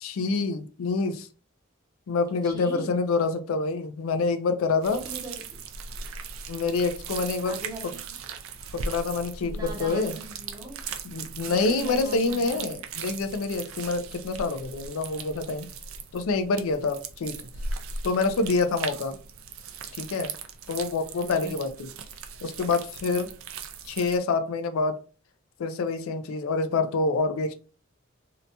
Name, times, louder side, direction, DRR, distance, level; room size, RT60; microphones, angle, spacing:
voice 1, 0.0-1.3 2.1-5.0 6.5-7.6 8.7-10.2 11.0-15.7 16.1-17.4 18.0-19.1 20.0-20.3 20.7-21.9 22.4-23.3 23.8-25.0 25.6-27.5, left 3 dB, 85° left, 0.4 m, -27 dB
voice 2, 2.4-2.9 4.9-5.6 7.4-8.2 9.4-10.8 11.5-12.8 21.2-21.6 23.1-23.4, right 1 dB, 20° right, 0.6 m, -40 dB
sound 1, 4.8-24.2, right 5 dB, 80° right, 0.4 m, -38 dB
2.8 x 2.1 x 2.6 m
head